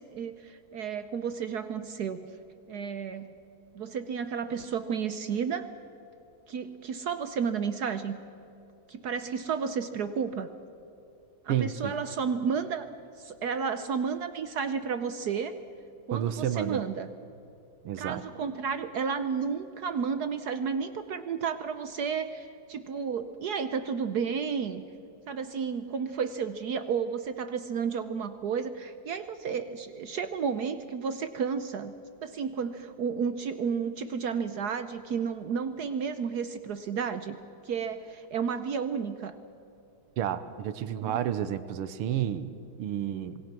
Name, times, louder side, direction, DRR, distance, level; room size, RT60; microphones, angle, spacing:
voice 1, 0.0-2.3 2.7-3.3 3.7-5.7 6.5-8.2 8.9-10.5 11.4-12.9 13.2-15.6 16.1-17.1 18.0-24.8 25.3-31.9 32.2-37.4 37.7-39.3 40.9-41.2, right 6 dB, 65° right, 10 dB, 1.0 m, -32 dB
voice 2, 11.5-11.9 16.1-16.9 17.8-18.2 40.2-43.4, right 10 dB, 85° right, 13 dB, 1.7 m, -31 dB
26.0 x 21.0 x 6.0 m, 2.7 s
omnidirectional pair, 2.4 m